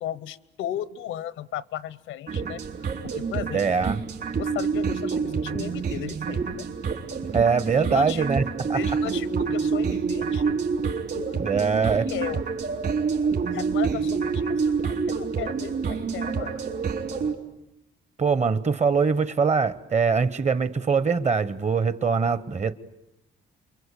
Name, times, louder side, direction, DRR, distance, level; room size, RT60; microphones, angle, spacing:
voice 1, 0.0-2.6 3.0-3.8 4.4-6.7 7.7-8.3 8.7-10.7 11.1-11.4 12.0-12.4 13.5-16.7, left 11 dB, 85° left, 0.9 m, -35 dB
sound 1, 2.3-17.3, right 5 dB, 55° right, 3.8 m, -27 dB
voice 2, 3.5-4.0 7.3-8.8 11.4-12.1 18.2-22.7, right 5 dB, 35° right, 1.2 m, -23 dB
29.5 x 23.5 x 8.5 m
cardioid pair, 90°, 20 cm